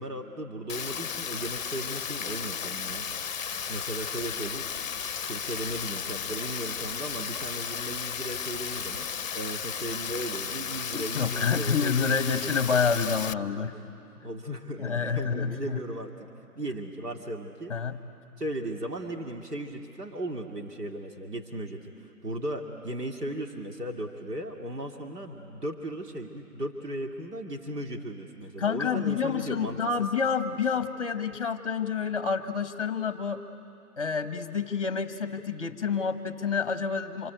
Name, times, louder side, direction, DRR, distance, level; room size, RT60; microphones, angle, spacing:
voice 1, 0.0-3.0 3.7-4.7 5.3-9.1 9.3-12.2 14.2-16.3 16.5-17.7 18.4-21.9 22.2-29.8, right 1 dB, 85° right, 2 dB, 2.7 m, -36 dB
Rain, 0.7-13.3, left 7 dB, 60° left, 0.6 m, -34 dB
voice 2, 10.9-13.8 14.8-15.8 17.7-18.0 28.6-33.4 34.0-37.3, left 6 dB, 20° left, 10 dB, 1.0 m, -28 dB
27.5 x 26.5 x 8.1 m, 2.7 s
figure-of-eight pair, 165°, 46 cm